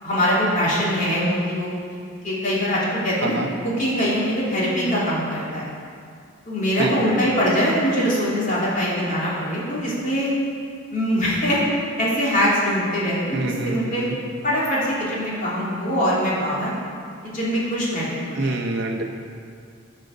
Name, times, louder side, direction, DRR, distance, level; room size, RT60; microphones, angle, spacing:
voice 1, 0.0-1.7 2.2-3.3 3.6-5.7 6.4-10.3 10.9-11.6 12.0-14.1 14.4-16.7 17.3-18.6, equal, 40° left, -6 dB, 3.1 m, -22 dB
voice 2, 6.8-7.1 13.3-14.2 18.3-19.0, right 2 dB, 55° right, 3 dB, 0.9 m, -26 dB
12.0 x 6.4 x 6.7 m, 2.3 s
head